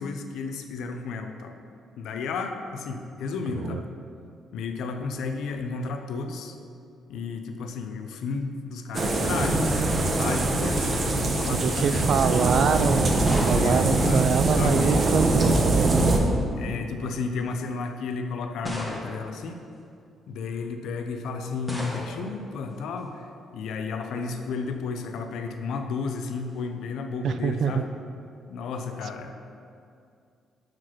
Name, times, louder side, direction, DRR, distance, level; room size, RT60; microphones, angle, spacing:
voice 1, 0.0-1.6 2.0-3.9 4.5-6.6 7.1-12.5 13.5-14.2 14.6-15.0 16.5-19.6 20.3-27.9 28.5-29.3, left 4 dB, 80° left, 6 dB, 0.6 m, -33 dB
sound 1, 8.9-16.2, right 2 dB, 45° right, 0.9 m, -23 dB
voice 2, 11.5-16.1 27.2-27.9, right 7 dB, 65° right, 11 dB, 0.3 m, -25 dB
sound 2, 13.1-15.0 16.0-16.5 17.3-17.4 18.6-19.5 21.7-22.4, equal, 5° left, 1.3 m, -37 dB
6.0 x 4.9 x 5.9 m, 2.4 s
cardioid pair, 90°, 0 cm